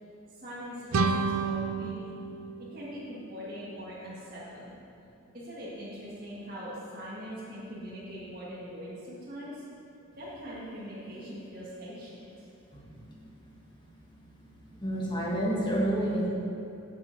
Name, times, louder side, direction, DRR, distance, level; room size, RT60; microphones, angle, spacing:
voice 1, 0.3-2.1 2.6-4.8 5.3-9.6 10.2-12.5, equal, 40° right, -11 dB, 1.9 m, -42 dB
sound 1, 0.9-3.7, right 4 dB, 75° right, 0.5 m, -31 dB
voice 2, 14.8-16.3, right 1 dB, 20° left, -4 dB, 1.6 m, -28 dB
8.3 x 7.1 x 6.1 m, 2.8 s
head